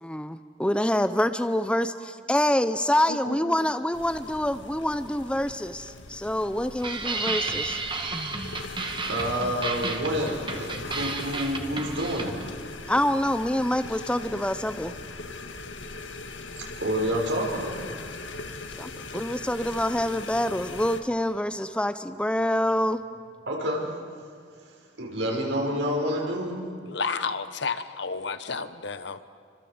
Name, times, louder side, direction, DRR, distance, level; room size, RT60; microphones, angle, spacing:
voice 1, 0.0-7.8 12.9-14.9 18.8-23.0, left 1 dB, 5° left, 11 dB, 0.7 m, -26 dB
voice 2, 3.1-3.7 26.9-29.2, left 4 dB, 70° left, 11 dB, 1.2 m, -32 dB
sound 1, 3.9-21.0, left 3 dB, 85° left, 1.9 m, -40 dB
sound 2, 6.8-12.5, right 3 dB, 25° right, 1.9 m, -32 dB
voice 3, 9.1-12.3 16.6-17.9 23.5-23.9 24.6-24.7 25.0-26.6, equal, 75° right, 0 dB, 5.9 m, -28 dB
28.0 x 25.5 x 8.0 m, 2.2 s
head